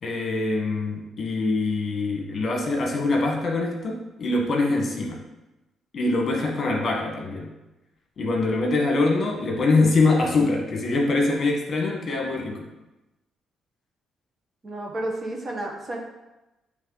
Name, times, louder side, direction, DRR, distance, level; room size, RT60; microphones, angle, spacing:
voice 1, 0.0-5.2 5.9-7.5 8.2-12.7, left 3 dB, 50° left, 0 dB, 1.4 m, -24 dB
voice 2, 14.6-16.0, right 1 dB, 40° right, 0 dB, 1.4 m, -31 dB
8.9 x 3.2 x 4.0 m, 1.0 s
cardioid pair, 90°, 0 cm